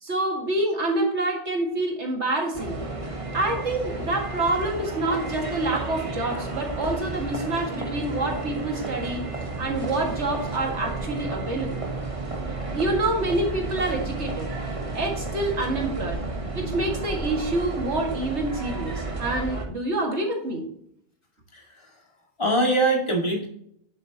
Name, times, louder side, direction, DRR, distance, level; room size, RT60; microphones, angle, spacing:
voice 1, 0.0-2.8 3.3-9.2 9.6-11.9 12.7-14.5 14.9-16.2 16.5-20.7, right 2 dB, 80° right, 0 dB, 2.4 m, -27 dB
sound 1, 2.5-19.7, right 3 dB, 30° right, 1.2 m, -32 dB
voice 2, 21.5-22.0 22.4-23.5, right 1 dB, 25° left, 0 dB, 2.1 m, -23 dB
9.7 x 7.5 x 2.9 m, 0.70 s
omnidirectional pair, 1.2 m